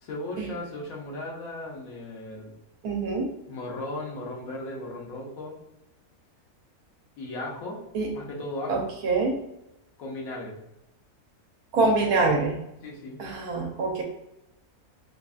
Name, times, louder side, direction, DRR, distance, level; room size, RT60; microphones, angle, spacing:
voice 1, 0.0-2.5 3.5-5.6 7.2-7.8 8.1-8.9 10.0-10.6 11.8-11.9 12.3-12.4 12.8-13.2, left 2 dB, 70° left, -2 dB, 1.2 m, -36 dB
voice 2, 2.8-3.3 7.9-8.1 8.7-9.4 11.7-12.6 13.2-14.0, right 3 dB, 80° right, 1 dB, 1.2 m, -25 dB
5.1 x 2.3 x 2.4 m, 0.86 s
omnidirectional pair, 1.6 m